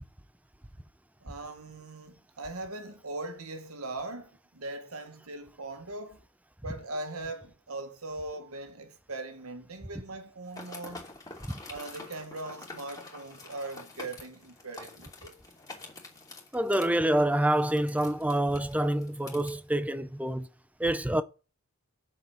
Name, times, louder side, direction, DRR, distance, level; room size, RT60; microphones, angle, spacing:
voice 1, 1.2-6.2 6.6-11.1 11.7-15.4, right 2 dB, 85° right, 1.7 m, -40 dB
sound 1, 10.5-19.5, left 3 dB, 15° left, 2.8 m, -47 dB
voice 2, 16.5-20.5 20.8-21.2, right 1 dB, 5° right, 0.6 m, -27 dB
8.0 x 6.7 x 7.2 m
head